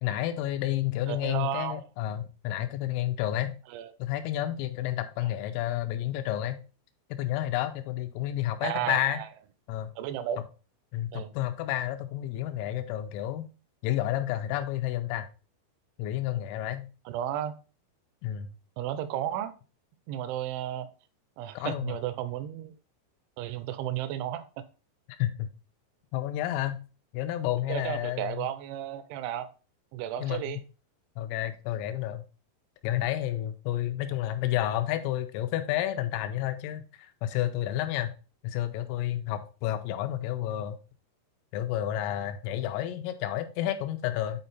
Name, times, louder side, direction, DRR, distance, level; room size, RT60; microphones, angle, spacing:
voice 1, 0.0-3.6 4.0-6.6 7.2-9.2 9.7-9.9 10.9-13.5 13.8-15.3 16.0-16.9 18.2-18.5 21.6-22.0 25.1-25.5 26.1-26.8 27.1-28.5 30.2-30.5 31.2-32.2 32.8-38.1 38.4-40.8 41.5-44.4, left 13 dB, 90° left, 3.2 m, -30 dB
voice 2, 1.1-1.8 3.7-3.9 8.6-9.3 10.0-10.4 11.1-11.3 17.1-17.5 18.8-19.5 20.1-20.9 21.4-22.7 23.4-24.5 27.7-29.5 29.9-30.6, right 11 dB, 80° right, 2.8 m, -33 dB
8.6 x 4.4 x 4.1 m
omnidirectional pair, 5.8 m